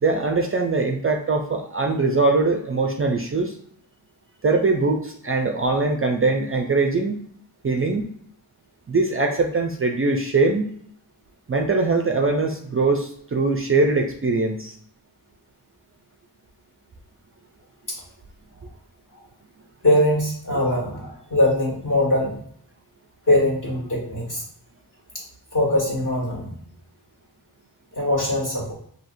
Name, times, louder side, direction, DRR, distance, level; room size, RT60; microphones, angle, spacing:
voice 1, 0.0-3.5 4.4-7.2 7.6-8.1 8.9-10.7 11.5-14.8, right 3 dB, 35° right, 3 dB, 0.4 m, -22 dB
voice 2, 19.8-22.4 23.3-24.4 25.1-25.2 25.5-26.6 27.9-28.7, left 1 dB, 45° left, -3 dB, 1.7 m, -22 dB
5.7 x 2.8 x 2.6 m, 0.64 s
wide cardioid pair, 130°, 41 cm